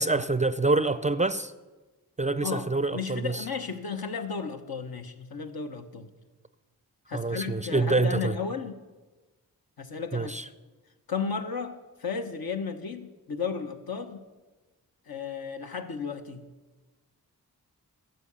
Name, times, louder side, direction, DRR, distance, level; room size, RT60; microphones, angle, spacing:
voice 1, 0.0-1.5 2.2-3.5 7.1-8.4 10.1-10.5, right 3 dB, 20° right, 14 dB, 0.4 m, -26 dB
voice 2, 2.4-6.1 7.1-8.8 9.8-10.4 11.1-14.3 15.1-16.4, left 5 dB, 65° left, 6 dB, 1.2 m, -34 dB
12.5 x 7.6 x 6.9 m, 1.2 s
cardioid pair, 45°, 39 cm